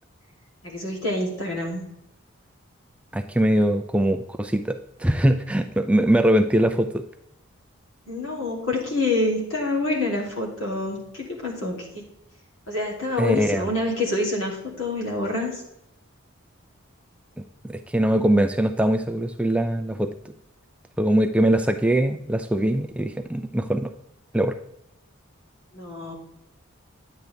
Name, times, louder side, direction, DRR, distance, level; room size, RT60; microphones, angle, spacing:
voice 1, 0.6-1.8 8.1-12.0 12.7-15.6 25.7-26.1, left 2 dB, 75° left, -2 dB, 2.9 m, -27 dB
voice 2, 3.1-7.0 13.2-13.7 17.6-20.1 21.0-23.9 24.3-24.6, right 1 dB, 5° right, 8 dB, 0.3 m, -22 dB
10.5 x 8.0 x 3.4 m, 0.85 s
head